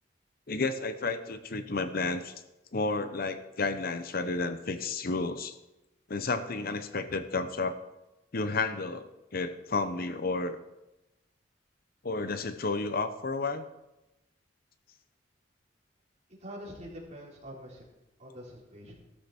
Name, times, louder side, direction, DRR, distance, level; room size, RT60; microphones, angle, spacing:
voice 1, 0.5-2.3 2.7-5.5 6.1-7.8 8.3-10.6 12.0-13.6, left 3 dB, 55° left, 10 dB, 0.9 m, -31 dB
voice 2, 16.4-17.8 18.2-18.9, equal, 40° right, -3 dB, 4.3 m, -44 dB
15.0 x 13.0 x 4.4 m, 0.95 s
head